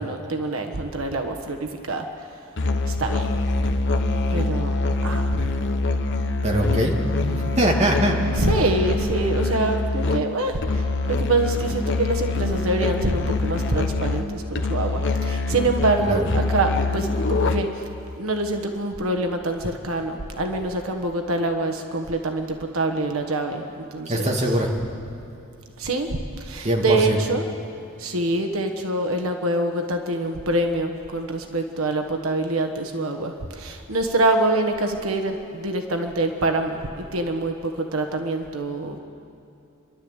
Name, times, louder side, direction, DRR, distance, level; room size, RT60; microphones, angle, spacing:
voice 1, 0.0-2.0 2.9-3.3 4.3-4.7 5.0-5.4 8.4-17.7 18.2-24.5 25.8-27.4 28.0-39.0, right 2 dB, 80° right, 4 dB, 1.4 m, -25 dB
Musical instrument, 2.6-17.9, left 2 dB, 55° left, 1.2 m, -25 dB
voice 2, 6.4-8.2 16.0-16.3 24.1-24.7 26.6-27.2, right 1 dB, 30° right, 0 dB, 2.3 m, -22 dB
29.5 x 12.0 x 8.1 m, 2.6 s
head